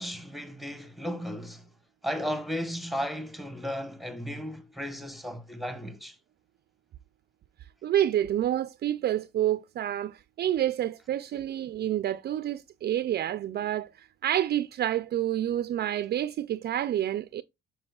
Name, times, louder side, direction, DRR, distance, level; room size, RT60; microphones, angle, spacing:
voice 1, 0.0-1.7 2.0-6.1, equal, ahead, 1.0 m, -35 dB
voice 2, 7.8-17.4, right 11 dB, 55° right, 0.4 m, -28 dB
8.8 x 4.9 x 2.3 m
cardioid pair, 90°, 20 cm